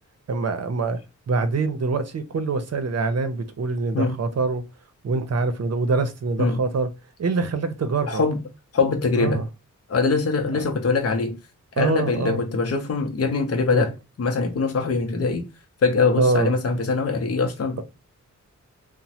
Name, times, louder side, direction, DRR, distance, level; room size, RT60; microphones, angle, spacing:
voice 1, 0.3-1.0 1.3-4.6 5.0-6.9 7.2-8.2 9.2-9.5 10.5-10.6 11.8-12.4 13.7-13.9 16.2-16.5, right 3 dB, 55° right, 0.7 m, -24 dB
voice 2, 8.1-8.4 8.7-9.4 9.9-11.4 11.8-15.4 15.8-17.8, left 4 dB, 50° left, 0.7 m, -23 dB
3.1 x 2.1 x 2.7 m
wide cardioid pair, 100°, 31 cm